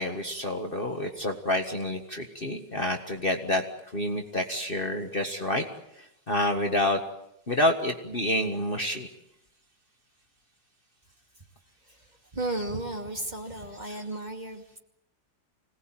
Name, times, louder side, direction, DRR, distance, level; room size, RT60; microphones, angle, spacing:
voice 1, 0.0-3.6 3.9-5.7 5.9-7.0 7.5-9.1, left 1 dB, 30° left, 4 dB, 1.7 m, -28 dB
voice 2, 11.9-14.8, right 2 dB, 25° right, 3 dB, 2.5 m, -34 dB
26.0 x 18.5 x 9.0 m, 0.80 s
omnidirectional pair, 1.9 m